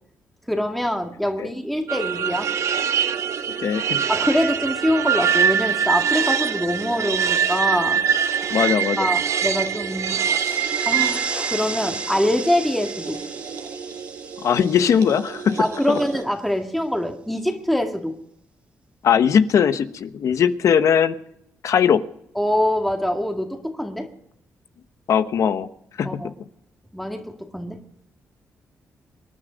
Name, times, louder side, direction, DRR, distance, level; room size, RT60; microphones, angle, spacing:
voice 1, 0.5-2.5 4.1-8.0 9.0-10.2 10.9-11.2 11.5-13.2 15.6-18.1 22.4-24.1 26.0-26.3 26.9-27.8, left 1 dB, ahead, 3 dB, 1.9 m, -24 dB
sound 1, 1.9-16.2, right 8 dB, 60° right, 1.0 m, -24 dB
voice 2, 3.6-4.0 8.5-9.1 14.4-16.0 19.0-21.1 21.6-22.0 25.1-25.7 26.0-26.2, left 8 dB, 70° left, 11 dB, 1.0 m, -19 dB
sound 2, 9.9-15.8, right 3 dB, 20° right, 1.1 m, -34 dB
25.5 x 10.0 x 5.1 m, 0.75 s
cardioid pair, 90°, 6 cm